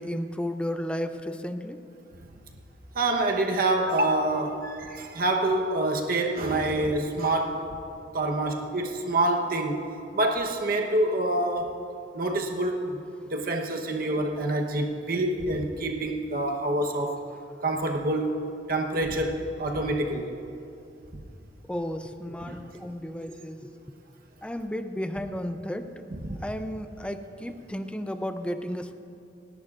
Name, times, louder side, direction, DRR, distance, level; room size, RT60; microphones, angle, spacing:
voice 1, 0.0-1.8 21.7-23.7 24.4-26.1 26.4-28.9, equal, 5° left, 8 dB, 0.5 m, -33 dB
voice 2, 2.9-7.6 8.1-9.8 10.1-11.8 12.1-17.2 17.6-18.4 18.7-20.3 22.4-22.6 26.1-26.4, right 2 dB, 55° right, 2 dB, 1.0 m, -26 dB
28.5 x 11.0 x 2.5 m, 2.6 s
head